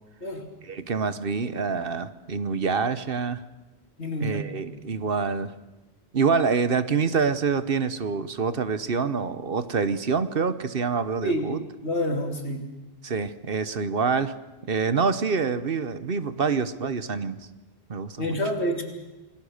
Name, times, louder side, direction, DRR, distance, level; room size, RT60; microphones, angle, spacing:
voice 1, 0.6-3.4 4.2-5.5 6.1-11.6 13.0-14.3 14.7-17.4 17.9-18.4, right 5 dB, 60° right, 13 dB, 1.2 m, -26 dB
voice 2, 4.0-4.4 11.2-11.5 11.8-12.7 18.2-18.8, equal, 85° left, 4 dB, 3.4 m, -28 dB
28.0 x 19.5 x 6.6 m, 1.1 s
omnidirectional pair, 1.1 m